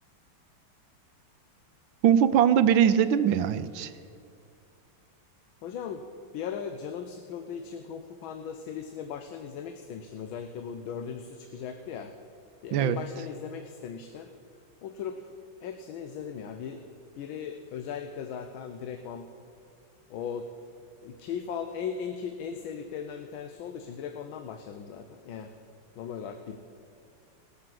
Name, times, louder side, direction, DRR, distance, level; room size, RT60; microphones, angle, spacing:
voice 1, 2.0-3.9 12.7-13.0, right 9 dB, 80° right, 12 dB, 1.3 m, -21 dB
voice 2, 5.6-6.0 6.3-12.1 12.6-14.3 14.8-15.3 15.6-16.9 17.2-19.3 20.1-20.5 21.0-25.5 26.0-26.6, left 7 dB, 80° left, 7 dB, 1.5 m, -38 dB
18.5 x 6.6 x 7.5 m, 2.3 s
omnidirectional pair, 2.2 m